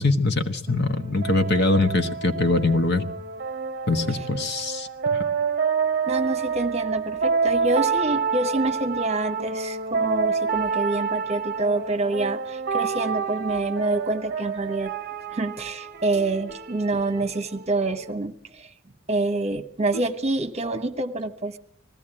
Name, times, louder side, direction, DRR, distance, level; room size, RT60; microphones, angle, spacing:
voice 1, 0.0-3.0 3.9-5.2, left 2 dB, 55° left, 7 dB, 1.4 m, -23 dB
sound 1, 0.7-18.1, right 5 dB, 45° right, 0.8 m, -28 dB
voice 2, 6.1-14.9 15.3-18.7 19.1-21.6, right 2 dB, 30° right, 9 dB, 1.2 m, -27 dB
20.0 x 16.0 x 8.9 m, 0.65 s
head